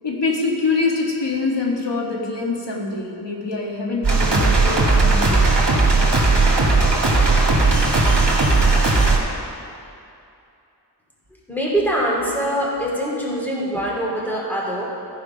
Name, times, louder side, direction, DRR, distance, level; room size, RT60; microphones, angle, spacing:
voice 1, 0.0-5.4, left 3 dB, 80° left, -2 dB, 1.7 m, -24 dB
sound 1, 4.0-9.2, right 3 dB, 75° right, 1.8 m, -16 dB
voice 2, 11.5-14.8, equal, 5° left, -4 dB, 2.7 m, -23 dB
14.0 x 4.8 x 5.7 m, 2.6 s
wide cardioid pair, 60°, 42 cm